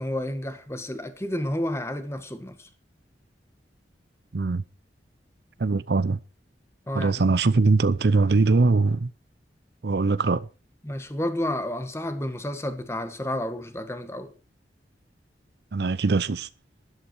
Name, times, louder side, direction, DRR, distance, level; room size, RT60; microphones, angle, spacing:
voice 1, 0.0-2.7 6.9-7.3 10.8-14.3, left 1 dB, 15° left, 1.6 m, -31 dB
voice 2, 4.3-4.6 5.6-6.2 6.9-9.1 9.8-10.5 15.7-16.5, right 3 dB, 65° right, 0.6 m, -22 dB
12.5 x 11.5 x 4.6 m
head